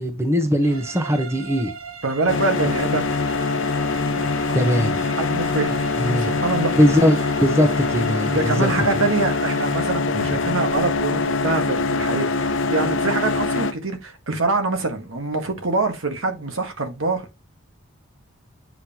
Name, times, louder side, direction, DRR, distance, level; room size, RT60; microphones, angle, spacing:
voice 1, 0.0-1.7 4.5-5.0 6.0-6.3 6.8-8.7 10.1-10.3, equal, 15° right, 1.0 m, -20 dB
sound 1, 0.6-10.1, right 6 dB, 90° right, 1.4 m, -39 dB
voice 2, 2.0-3.1 4.2-4.6 5.2-6.7 8.2-17.3, right 3 dB, 70° right, 1.6 m, -25 dB
sound 2, 2.3-13.7, left 3 dB, 60° left, 0.8 m, -23 dB
7.9 x 5.4 x 2.9 m
head